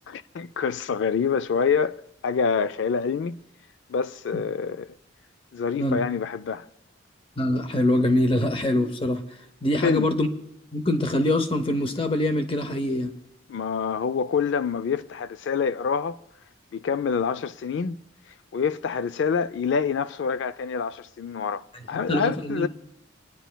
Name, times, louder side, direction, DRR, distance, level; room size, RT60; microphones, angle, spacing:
voice 1, 0.1-3.4 3.9-4.9 5.5-6.7 9.8-10.1 13.5-16.2 16.7-18.0 18.5-22.7, left 6 dB, 60° left, 0.3 m, -26 dB
voice 2, 7.4-9.2 9.6-10.3 10.7-13.1 21.9-22.7, left 1 dB, 25° left, 0.7 m, -24 dB
28.5 x 10.0 x 2.2 m
head